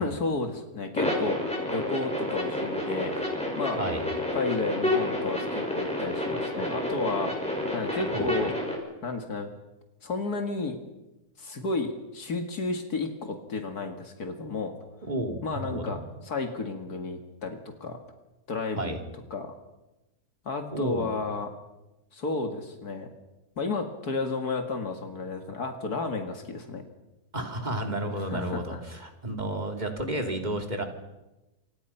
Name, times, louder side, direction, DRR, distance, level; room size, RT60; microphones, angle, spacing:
voice 1, 0.0-1.4 1.7-3.1 3.6-3.8 4.3-7.3 7.7-8.5 9.0-9.5 10.0-10.8 11.4-14.7 15.4-18.0 18.5-19.0 19.3-19.6 20.5-21.5 22.1-23.1 23.6-26.8 28.3-28.8, left 3 dB, 80° left, 5 dB, 2.6 m, -32 dB
sound 1, 0.9-8.7, left 1 dB, 5° left, 6.3 m, -30 dB
voice 2, 15.1-16.0 18.8-19.0 20.7-21.1 27.3-30.8, right 1 dB, 30° right, 4 dB, 3.1 m, -32 dB
27.5 x 25.0 x 5.8 m, 1.0 s
omnidirectional pair, 1.6 m